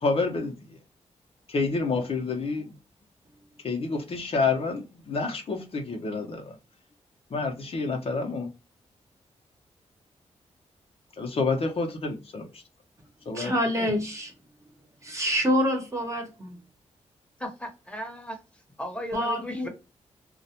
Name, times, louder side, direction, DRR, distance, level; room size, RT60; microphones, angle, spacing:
voice 1, 0.0-0.8 1.5-2.7 3.6-6.5 7.3-8.5 11.2-12.5 13.3-13.5, left 4 dB, 55° left, 0.7 m, -28 dB
voice 2, 13.3-14.3 15.0-16.6 19.1-19.7, equal, 25° right, 0.9 m, -26 dB
voice 3, 17.4-18.4 18.8-19.7, left 1 dB, 10° left, 0.9 m, -36 dB
2.3 x 2.1 x 2.7 m
cardioid pair, 80°, 12 cm